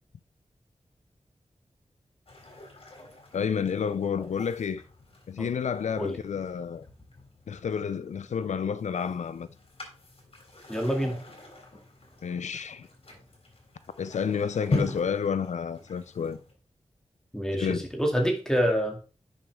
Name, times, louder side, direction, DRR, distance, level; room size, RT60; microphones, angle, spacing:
sound 1, 2.3-16.5, left 3 dB, 55° left, 3.4 m, -40 dB
voice 1, 3.3-4.8 5.3-6.8 7.5-9.5 12.2-12.9 14.0-16.4 17.5-17.9, left 7 dB, 90° left, 0.4 m, -30 dB
voice 2, 10.7-11.2 17.3-17.7 17.9-19.0, equal, 5° left, 2.3 m, -26 dB
10.5 x 6.5 x 3.6 m
wide cardioid pair, 110°, 12 cm